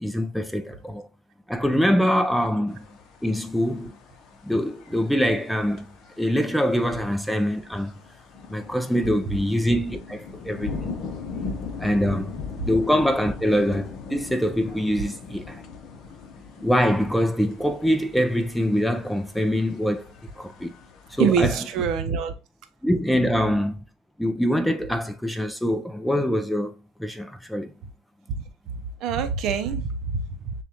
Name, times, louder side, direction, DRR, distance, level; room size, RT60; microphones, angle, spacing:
voice 1, 0.0-1.1 1.5-2.9 3.2-4.0 4.4-5.9 6.2-7.9 8.5-11.0 11.8-12.4 12.6-15.6 16.6-20.8 21.1-21.7 22.8-23.8 24.2-26.7 27.0-27.7, equal, ahead, 0.5 m, -24 dB
sound 1, 2.7-21.8, left 5 dB, 50° left, 0.9 m, -40 dB
voice 2, 21.2-22.3 29.0-30.5, right 6 dB, 55° right, 0.7 m, -25 dB
6.9 x 2.4 x 2.9 m
supercardioid pair, 120°, 0 cm